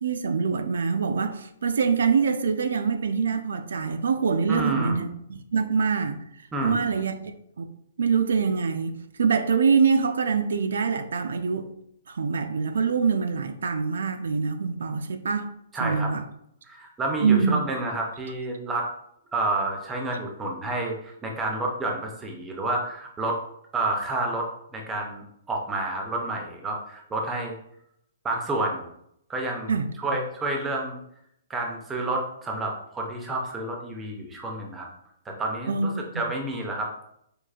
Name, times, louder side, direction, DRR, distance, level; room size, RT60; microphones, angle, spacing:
voice 1, 0.0-6.2 6.6-7.2 7.6-7.7 8.0-11.7 12.1-15.5 15.8-16.2 17.2-17.6 29.7-29.9 35.7-36.2, right 5 dB, 85° right, 8 dB, 0.4 m, -24 dB
voice 2, 4.5-5.0 6.5-7.0 15.7-16.1 16.6-18.9 19.3-23.4 23.7-24.5 24.7-27.6 28.2-28.9 29.3-31.0 31.5-34.9 35.3-35.9 36.1-37.0, right 2 dB, 10° right, 1 dB, 0.4 m, -29 dB
4.7 x 2.4 x 2.3 m, 0.73 s
hypercardioid pair, 175°, 0 cm